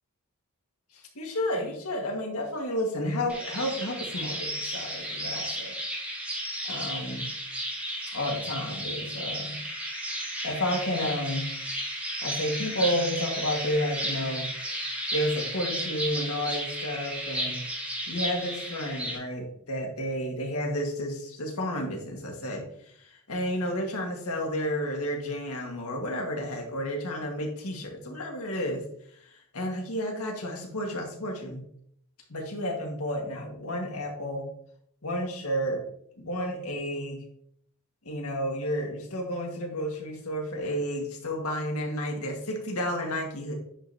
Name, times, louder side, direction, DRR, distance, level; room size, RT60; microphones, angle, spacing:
voice 1, 1.2-5.8 6.6-7.3 8.1-9.6 10.4-11.5 12.2-14.5 15.1-17.6 18.1-22.6 23.0-28.8 29.5-31.6 32.3-34.5 35.0-35.8 36.2-37.2 38.1-43.5, equal, 75° left, 1 dB, 2.1 m, -31 dB
sound 1, 3.3-19.2, equal, 5° right, 2.4 m, -34 dB
9.7 x 5.5 x 3.0 m, 0.67 s
head